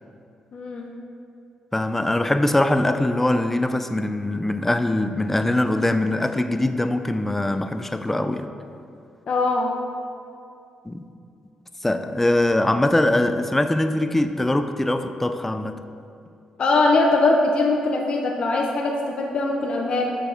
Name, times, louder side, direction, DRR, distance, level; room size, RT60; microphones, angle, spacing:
voice 1, 0.5-0.9 9.3-9.7 16.6-20.1, left 2 dB, 55° left, 0 dB, 0.8 m, -21 dB
voice 2, 1.7-8.5 10.9-11.0 11.8-15.8, left 1 dB, 10° left, 9 dB, 0.4 m, -22 dB
6.8 x 6.2 x 4.9 m, 2.5 s
cardioid pair, 90°, 2 cm